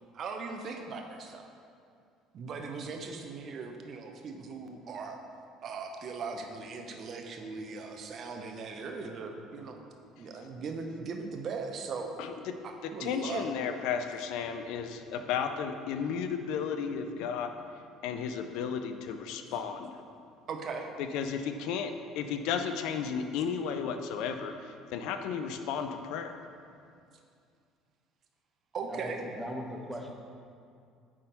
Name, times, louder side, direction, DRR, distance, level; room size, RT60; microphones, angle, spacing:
voice 1, 0.1-1.5 2.3-5.2 5.6-9.9 10.2-12.1 12.6-13.6 20.5-20.9 28.7-29.3, right 4 dB, 50° right, 3 dB, 0.8 m, -39 dB
voice 2, 12.8-17.5 18.0-19.9 21.1-26.4, left 7 dB, 65° left, 7 dB, 0.4 m, -34 dB
voice 3, 28.9-30.1, equal, 5° right, 0 dB, 1.1 m, -39 dB
9.3 x 3.7 x 4.0 m, 2.4 s
figure-of-eight pair, 55°, 0 cm